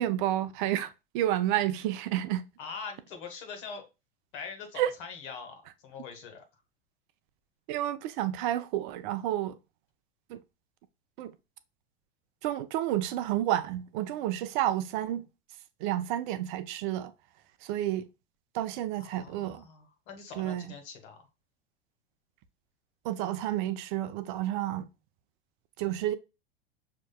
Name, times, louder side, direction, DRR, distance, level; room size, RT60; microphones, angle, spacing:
voice 1, 0.0-2.5 4.8-4.9 7.7-9.6 10.3-10.4 11.2-11.3 12.4-15.3 15.8-17.1 17.6-18.1 18.5-19.7 20.4-20.7 23.0-24.9 25.8-26.1, right 13 dB, 55° right, 0.6 m, -30 dB
voice 2, 2.6-3.8 4.3-6.4 19.0-21.3, left 5 dB, 60° left, 1.6 m, -43 dB
6.0 x 2.9 x 2.2 m
hypercardioid pair, 90°, 30 cm